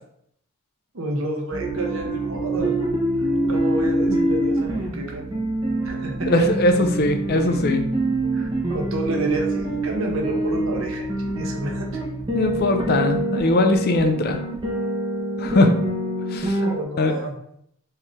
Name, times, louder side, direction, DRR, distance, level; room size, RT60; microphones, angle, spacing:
voice 1, 0.9-2.7 3.5-5.2 5.8-6.3 8.3-12.0 16.6-17.3, right 1 dB, 65° right, 1 dB, 1.0 m, -30 dB
sound 1, 1.5-14.8, right 3 dB, 35° right, 0.4 m, -37 dB
sound 2, 1.6-16.7, right 1 dB, 20° right, 0.8 m, -25 dB
voice 2, 6.3-7.8 12.3-14.4 15.4-15.7 16.3-16.7 17.0-17.2, left 2 dB, 45° left, 6 dB, 0.5 m, -20 dB
4.4 x 3.2 x 3.6 m, 0.71 s
head